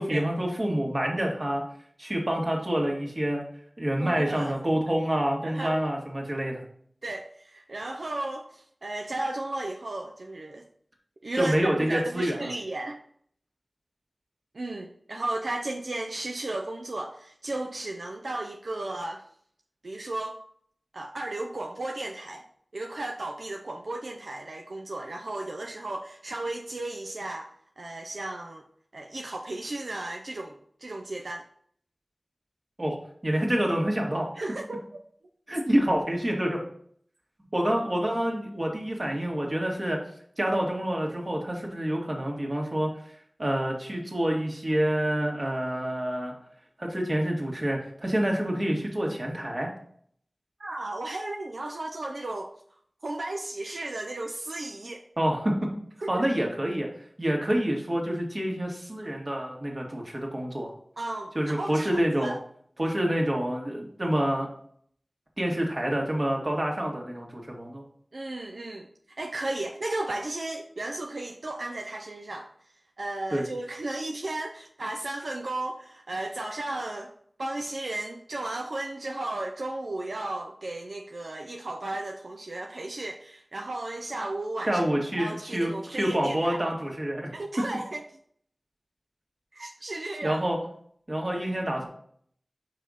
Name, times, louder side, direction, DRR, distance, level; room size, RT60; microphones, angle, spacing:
voice 1, 0.0-1.6 2.0-3.4 3.8-6.6 11.4-12.5 32.8-33.0 33.2-34.3 35.5-36.6 37.5-40.0 40.4-42.9 43.4-46.3 46.8-49.7 55.2-55.5 56.1-56.9 57.2-60.7 61.4-62.3 62.8-64.5 65.4-67.8 73.3-73.5 84.7-87.3 90.2-90.6 91.1-91.9, right 1 dB, 40° right, -1 dB, 1.7 m, -27 dB
voice 2, 4.0-4.5 5.4-5.8 7.0-10.6 11.2-13.0 14.5-19.2 19.8-20.4 20.9-22.4 22.7-28.6 28.9-30.5 30.8-31.5 34.4-34.8 50.6-52.5 53.0-55.0 56.0-56.2 61.0-62.4 68.1-68.9 69.2-72.5 73.0-77.1 77.4-84.8 85.2-86.6 87.3-88.2 89.5-90.4, right 2 dB, 80° right, 2 dB, 0.5 m, -34 dB
5.6 x 4.9 x 4.1 m, 0.62 s
wide cardioid pair, 60°, 0 cm